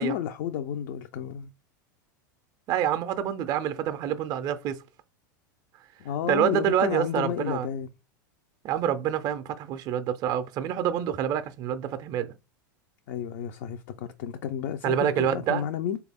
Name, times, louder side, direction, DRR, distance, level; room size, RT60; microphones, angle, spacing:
voice 1, 0.0-1.5 6.0-7.9 13.1-16.0, left 9 dB, 65° left, 0.4 m, -31 dB
voice 2, 2.7-4.8 6.2-7.7 8.6-12.3 14.8-15.6, right 9 dB, 40° right, 0.4 m, -27 dB
3.4 x 2.3 x 3.3 m
supercardioid pair, 120°, 11 cm